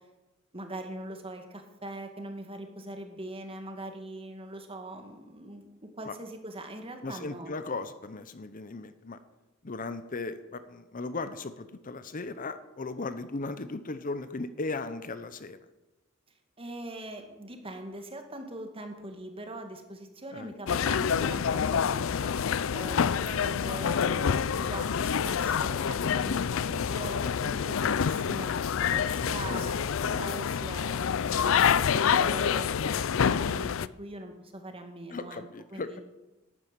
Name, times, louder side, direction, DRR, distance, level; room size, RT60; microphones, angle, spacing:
voice 1, 0.5-7.5 16.6-22.3 22.7-28.5 28.9-35.4 35.7-36.0, right 1 dB, 25° right, 5 dB, 2.1 m, -42 dB
voice 2, 7.0-9.2 9.6-15.6 20.3-20.5 29.5-29.6 35.1-36.0, left 3 dB, 40° left, 12 dB, 0.8 m, -37 dB
sound 1, 20.7-33.9, left 7 dB, 70° left, 0.5 m, -27 dB
12.5 x 9.7 x 9.1 m, 1.1 s
head